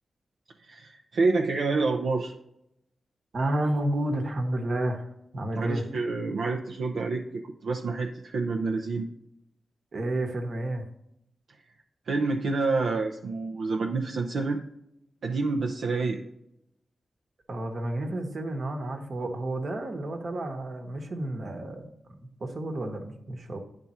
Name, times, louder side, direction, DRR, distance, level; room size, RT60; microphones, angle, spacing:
voice 1, 0.6-2.3 5.6-9.1 12.1-14.6 15.2-16.2, right 3 dB, 80° right, 1 dB, 0.5 m, -28 dB
voice 2, 3.3-5.1 5.3-5.8 9.9-10.9 17.5-23.6, right 1 dB, 60° right, 4 dB, 1.1 m, -31 dB
9.6 x 3.5 x 4.2 m, 0.80 s
cardioid pair, 60°, 0 cm